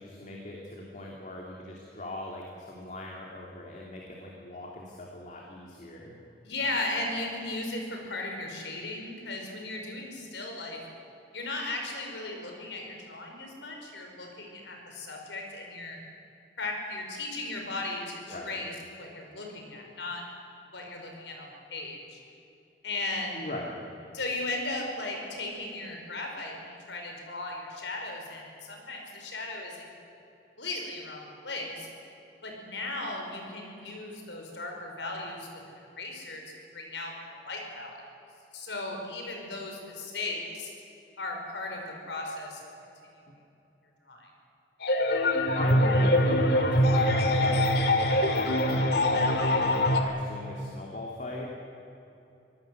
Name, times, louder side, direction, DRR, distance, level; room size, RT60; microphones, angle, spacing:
voice 1, 0.0-6.2 18.3-18.6 23.3-23.8 45.5-51.5, left 1 dB, 45° left, -1 dB, 2.7 m, -39 dB
voice 2, 6.4-10.8 11.3-16.0 16.6-18.7 19.0-20.2 20.7-22.2 22.8-23.5 24.1-29.9 30.6-31.9 32.4-35.6 36.0-36.4 36.7-37.9 38.5-40.7 41.2-42.7 44.1-44.3, left 2 dB, 85° left, 1 dB, 5.4 m, -36 dB
sound 1, 44.8-50.0, left 1 dB, 65° left, 2.2 m, -23 dB
25.5 x 18.5 x 7.9 m, 2.8 s
head